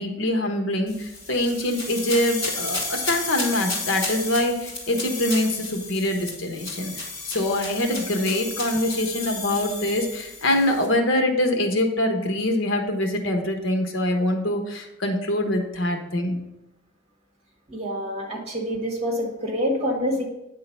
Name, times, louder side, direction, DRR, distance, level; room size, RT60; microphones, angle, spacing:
voice 1, 0.0-16.4, left 1 dB, 70° left, 4 dB, 1.1 m, -24 dB
sound 1, 0.9-10.9, left 3 dB, 25° left, 2.7 m, -33 dB
voice 2, 17.7-20.2, equal, 30° right, -1 dB, 1.8 m, -26 dB
9.1 x 3.8 x 5.5 m, 0.92 s
head